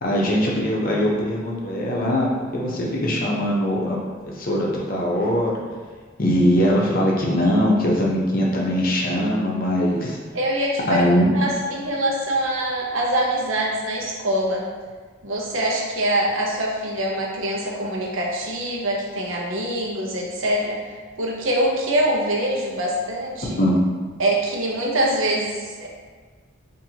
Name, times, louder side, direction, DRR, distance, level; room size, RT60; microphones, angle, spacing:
voice 1, 0.0-2.3 2.5-4.0 4.2-5.5 6.2-10.2 10.9-11.3 23.6-23.7, equal, 45° left, -3 dB, 0.7 m, -21 dB
voice 2, 10.3-11.1 11.3-14.7 15.2-23.6 24.2-25.9, right 1 dB, 80° right, -2 dB, 0.7 m, -24 dB
4.3 x 2.6 x 2.8 m, 1.5 s
head